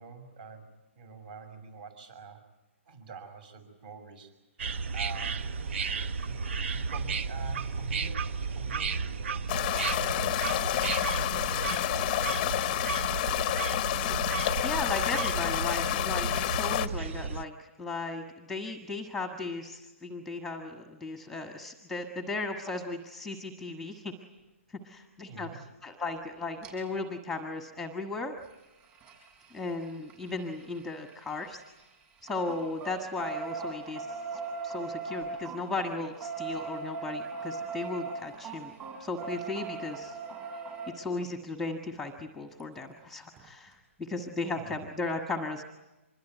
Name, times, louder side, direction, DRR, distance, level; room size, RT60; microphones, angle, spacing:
voice 1, 0.0-2.5 2.9-4.3 4.9-5.4 6.2-6.4 6.7-12.9 25.3-25.6 44.6-44.8, right 5 dB, 40° right, 8 dB, 6.2 m, -47 dB
sound 1, 4.6-17.4, right 5 dB, 60° right, 0.8 m, -33 dB
sound 2, 9.5-16.9, left 14 dB, 30° left, 0.8 m, -29 dB
voice 2, 14.6-24.1 24.8-25.5 25.8-28.3 29.5-31.6 32.2-38.7 39.0-40.2 40.9-45.6, left 3 dB, ahead, 5 dB, 1.6 m, -36 dB
sound 3, 26.6-26.7 28.4-31.9 32.2-40.9 42.6-42.7 43.0-43.1 43.4-43.5, right 4 dB, 25° right, 7.4 m, -39 dB
25.5 x 22.0 x 9.3 m, 1.0 s
hypercardioid pair, 155°, 7 cm